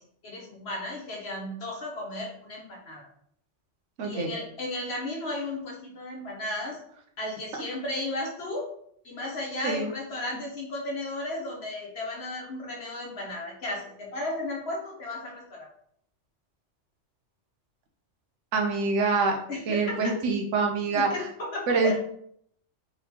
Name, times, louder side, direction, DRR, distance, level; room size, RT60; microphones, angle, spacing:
voice 1, 0.2-3.1 4.0-6.8 7.2-8.7 9.0-15.7 19.5-20.1 20.9-21.9, left 2 dB, 60° left, -2 dB, 1.3 m, -34 dB
voice 2, 4.0-4.3 9.6-9.9 18.5-19.4 19.7-21.3 21.7-22.0, right 4 dB, 80° right, 2 dB, 1.1 m, -25 dB
3.7 x 3.6 x 2.8 m, 0.65 s
omnidirectional pair, 1.2 m